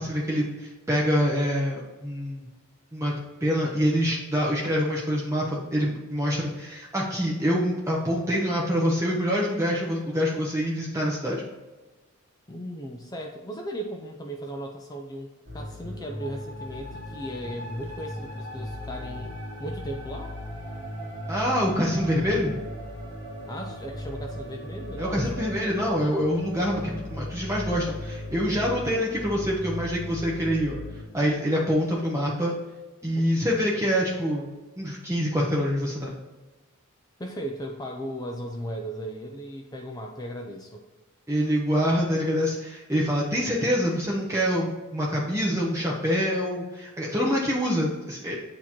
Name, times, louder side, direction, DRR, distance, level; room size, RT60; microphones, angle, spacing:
voice 1, 0.0-2.4 2.9-3.1 3.4-11.4 21.3-22.6 25.0-30.8 31.1-32.5 33.0-34.5 34.8-36.1 41.3-48.4, equal, 15° right, -3 dB, 0.8 m, -25 dB
voice 2, 12.5-19.3 19.6-20.3 23.5-25.5 33.1-33.2 37.2-40.8, right 1 dB, 20° left, 1 dB, 0.5 m, -37 dB
sound 1, 15.5-31.0, left 1 dB, 40° right, 1.8 m, -37 dB
8.6 x 2.9 x 4.3 m, 1.2 s
head